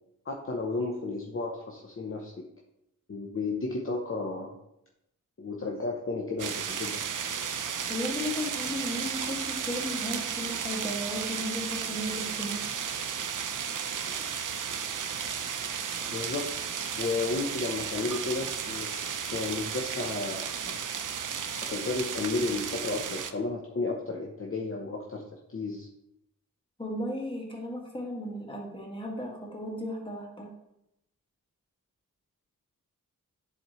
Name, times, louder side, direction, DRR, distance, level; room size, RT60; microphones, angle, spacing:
voice 1, 0.2-2.5 3.1-4.5 5.4-7.0 16.1-20.8 21.7-25.2 25.5-25.9, left 3 dB, 40° left, 0 dB, 0.8 m, -33 dB
sound 1, 6.4-23.3, right 7 dB, 70° right, 0.6 m, -34 dB
voice 2, 7.9-12.6 26.8-30.5, equal, 15° left, -1 dB, 1.9 m, -35 dB
10.5 x 4.2 x 3.1 m, 0.83 s
wide cardioid pair, 75°, 33 cm